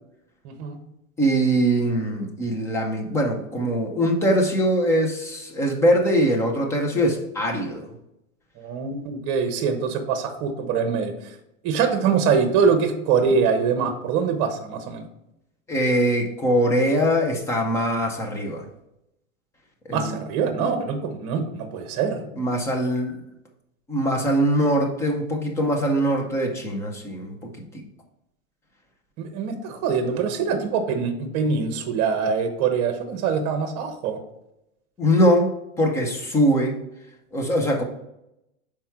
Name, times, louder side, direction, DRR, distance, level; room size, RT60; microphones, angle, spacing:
voice 1, 0.4-0.8 8.6-11.1 11.6-15.0 19.9-22.2 29.2-34.2, right 6 dB, 35° right, 7 dB, 1.1 m, -24 dB
voice 2, 1.2-7.9 15.7-18.7 19.9-20.2 22.3-23.2 23.9-27.8 35.0-36.8 37.3-37.8, equal, 5° left, 2 dB, 0.4 m, -22 dB
5.7 x 4.6 x 4.5 m, 0.86 s
supercardioid pair, 150°, 42 cm